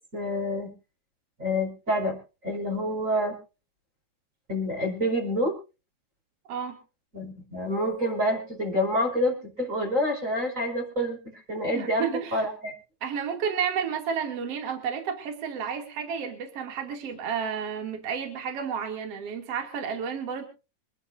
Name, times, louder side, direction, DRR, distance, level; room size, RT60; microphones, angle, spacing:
voice 1, 0.1-0.7 1.4-2.2 2.4-3.3 4.5-5.5 7.1-12.7, equal, 20° right, 0 dB, 5.4 m, -27 dB
voice 2, 11.7-12.5 13.0-20.4, right 7 dB, 40° right, 4 dB, 3.2 m, -31 dB
26.0 x 11.5 x 2.7 m, 0.32 s
omnidirectional pair, 4.6 m